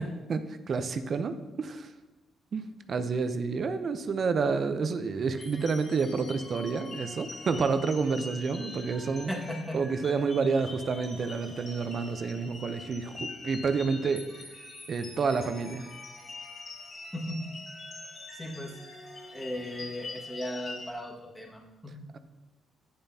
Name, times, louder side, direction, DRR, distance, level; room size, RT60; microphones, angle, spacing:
voice 1, 0.7-1.9 2.5-9.3 9.7-14.2 14.9-15.9 22.1-22.2, right 4 dB, 50° right, 10 dB, 0.6 m, -29 dB
sound 1, 5.4-20.9, left 2 dB, 45° left, 2.1 m, -44 dB
voice 2, 9.3-9.8 17.1-17.6 18.3-18.7 19.3-22.0, left 1 dB, 5° left, -1 dB, 1.7 m, -36 dB
10.5 x 6.9 x 2.8 m, 1.1 s
cardioid pair, 90°, 0 cm